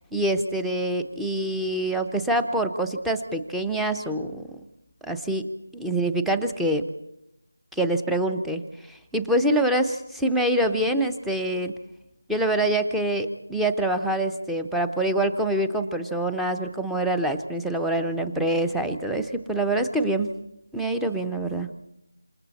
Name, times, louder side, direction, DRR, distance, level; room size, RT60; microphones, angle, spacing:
voice 1, 0.1-4.6 5.0-5.5 5.7-6.8 7.7-8.6 8.9-11.7 12.3-20.4 20.7-21.7, right 1 dB, ahead, 6 dB, 0.8 m, -25 dB
28.0 x 27.5 x 4.2 m, 0.85 s
figure-of-eight pair, 170°, 0 cm